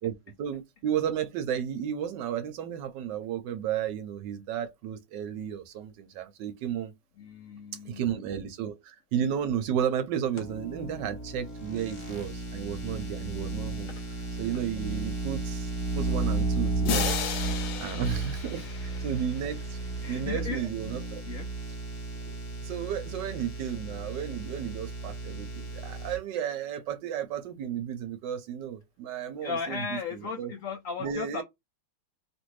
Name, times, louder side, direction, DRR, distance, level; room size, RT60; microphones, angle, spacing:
voice 1, 0.0-6.9 7.8-13.9 14.4-19.8 20.1-21.2 22.3-22.4 22.6-29.9 30.1-30.5 31.0-31.4, right 9 dB, 75° right, 1.1 m, -33 dB
voice 2, 7.2-8.2 13.9-14.4 18.5-19.1 20.0-20.7 21.2-21.5 29.4-31.4, left 5 dB, 85° left, 0.7 m, -37 dB
sound 1, 10.4-26.2, right 3 dB, 25° left, 0.6 m, -34 dB
sound 2, 16.8-19.7, left 8 dB, 70° left, 1.1 m, -34 dB
3.1 x 2.5 x 3.1 m
omnidirectional pair, 2.1 m